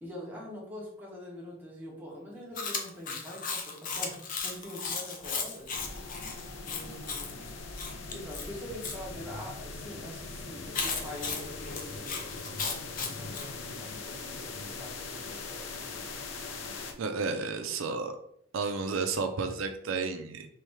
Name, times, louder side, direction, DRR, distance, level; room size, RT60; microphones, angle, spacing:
voice 1, 0.0-5.7 6.6-7.4 8.1-15.9, left 1 dB, 10° right, -4 dB, 1.3 m, -44 dB
Chewing mastication, 2.6-9.0 10.7-13.5, left 5 dB, 45° left, 0.7 m, -36 dB
sound 1, 5.7-16.9, left 3 dB, 90° left, 0.7 m, -41 dB
voice 2, 17.0-18.2 18.5-20.5, right 4 dB, 90° right, 7 dB, 0.5 m, -32 dB
3.4 x 3.1 x 4.7 m, 0.68 s
head